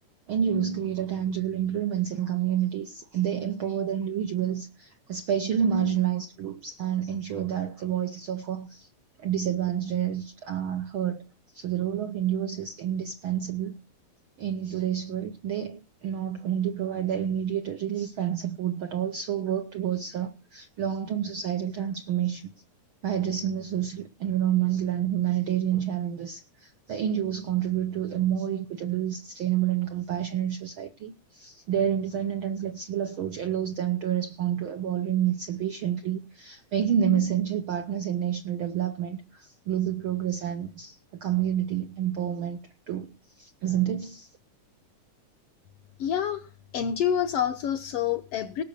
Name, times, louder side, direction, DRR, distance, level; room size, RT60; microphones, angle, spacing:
voice 1, 0.3-8.9 9.2-11.2 11.5-13.8 14.4-22.5 23.0-42.6 42.9-43.1 43.4-44.3, right 9 dB, 70° right, 1.2 m, -29 dB
voice 2, 46.0-46.4 46.7-48.6, left 9 dB, 70° left, 1.5 m, -27 dB
18.5 x 6.5 x 6.6 m
omnidirectional pair, 3.5 m